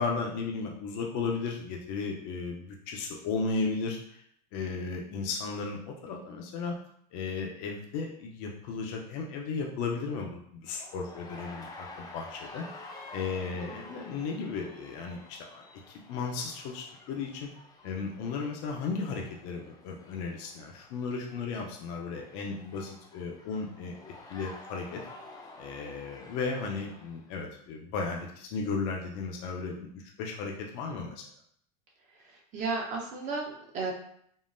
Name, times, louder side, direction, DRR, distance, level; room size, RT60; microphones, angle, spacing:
voice 1, 0.0-4.2 4.5-6.8 7.1-12.7 13.1-17.5 17.8-24.0 24.3-25.0 25.6-31.2, left 4 dB, 60° left, 1 dB, 0.6 m, -35 dB
sound 1, 10.7-27.2, left 2 dB, 20° left, 0.5 m, -50 dB
voice 2, 32.2-33.9, right 3 dB, 40° right, -1 dB, 0.8 m, -34 dB
3.6 x 2.0 x 2.5 m, 0.67 s
supercardioid pair, 120°, 20 cm